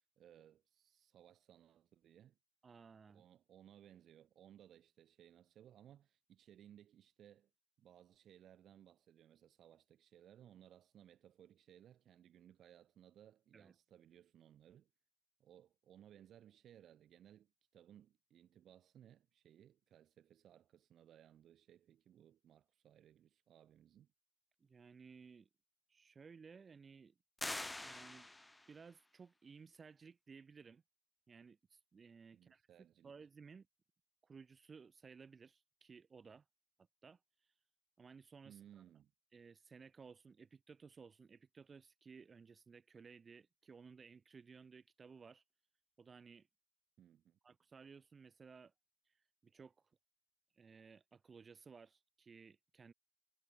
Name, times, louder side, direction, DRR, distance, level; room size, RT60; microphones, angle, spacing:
voice 1, 0.2-2.4 3.1-7.5 7.8-14.9 15.4-24.1 32.3-33.1 38.4-39.1 47.0-47.4, right 10 dB, 75° right, 2.2 m, -63 dB
voice 2, 2.6-3.3 13.5-13.7 24.6-25.5 25.9-27.1 27.8-28.3 28.7-30.8 31.3-32.6 33.0-33.7 34.2-36.5 36.8-37.6 38.0-38.8 39.3-45.4 46.0-46.5 47.4-48.7 49.0-49.9 50.5-52.9, right 5 dB, 40° right, 0.9 m, -58 dB
sound 1, 27.4-28.8, left 2 dB, 15° left, 0.6 m, -45 dB
cardioid pair, 95°, 0 cm